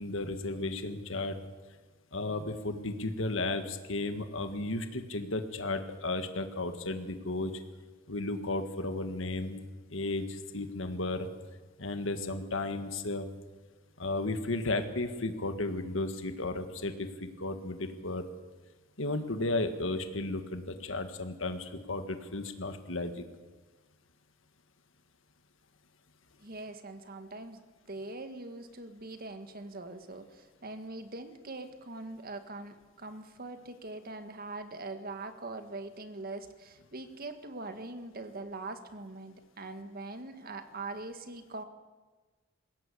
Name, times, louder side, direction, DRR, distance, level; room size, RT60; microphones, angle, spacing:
voice 1, 0.0-1.4 2.1-7.5 8.1-9.6 9.9-11.3 11.8-13.3 14.0-18.3 19.0-23.2, left 2 dB, 70° left, 8 dB, 1.7 m, -34 dB
voice 2, 26.4-27.6 27.9-41.6, right 2 dB, 50° right, 8 dB, 1.7 m, -42 dB
20.5 x 17.0 x 8.5 m, 1.3 s
head